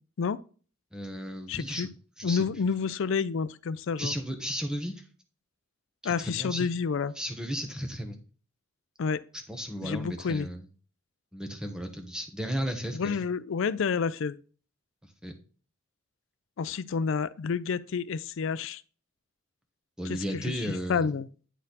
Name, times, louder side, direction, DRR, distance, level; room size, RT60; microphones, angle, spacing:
voice 1, 0.9-1.9 2.2-2.4 4.0-5.0 6.0-6.7 7.2-8.2 9.5-10.7 11.3-13.2 15.2-15.3 20.0-21.1, equal, 5° right, 1.1 m, -34 dB
voice 2, 1.5-1.9 2.2-4.1 6.0-7.1 9.0-9.2 9.8-10.5 12.9-14.4 16.6-18.8 20.1-21.3, left 5 dB, 65° left, 0.4 m, -29 dB
10.0 x 4.2 x 4.0 m
head